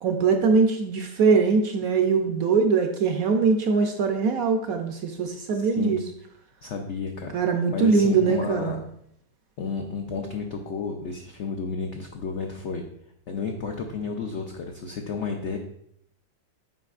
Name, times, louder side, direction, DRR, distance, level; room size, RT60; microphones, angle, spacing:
voice 1, 0.0-6.0 7.3-8.8, right 5 dB, 70° right, 5 dB, 0.9 m, -22 dB
voice 2, 5.6-5.9 6.6-8.8 9.6-12.8 13.3-15.6, left 5 dB, 85° left, 3 dB, 0.6 m, -32 dB
7.5 x 5.2 x 2.4 m, 0.71 s
omnidirectional pair, 1.9 m